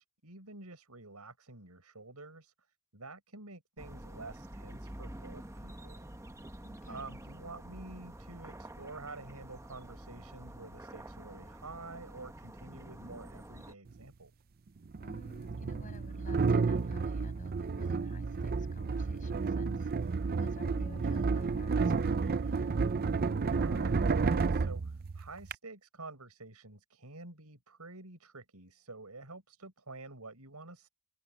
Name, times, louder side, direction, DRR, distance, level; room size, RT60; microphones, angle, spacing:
voice 1, 0.0-2.5 2.9-6.0 6.9-14.3 23.5-30.9, right 3 dB, 85° right, 6.6 m, -49 dB
sound 1, 3.8-13.7, right 1 dB, 15° right, 1.1 m, -48 dB
voice 2, 6.6-7.2 15.0-22.8, left 1 dB, 35° left, 6.3 m, -54 dB
sound 2, 13.9-14.0 14.9-25.5, right 4 dB, 45° right, 0.5 m, -31 dB
open air
head